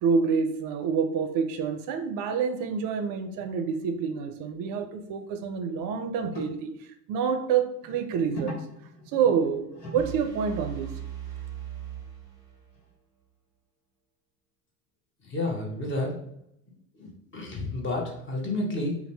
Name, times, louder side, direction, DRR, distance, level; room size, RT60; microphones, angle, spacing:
voice 1, 0.0-6.7 7.1-8.6 9.1-9.7 9.9-10.9, right 6 dB, 45° right, 0.4 m, -27 dB
sound 1, 3.4-3.6 3.9-4.0 4.8-4.9 5.2-5.3 6.3-6.5 7.8-10.8 12.7-12.8, left 1 dB, 85° left, 1.0 m, -41 dB
sound 2, 10.0-12.9, right 11 dB, 10° right, 0.7 m, -39 dB
voice 2, 15.2-16.1 17.0-19.0, left 2 dB, 25° left, 0.8 m, -30 dB
2.6 x 2.1 x 3.3 m
hypercardioid pair, 85°, 47 cm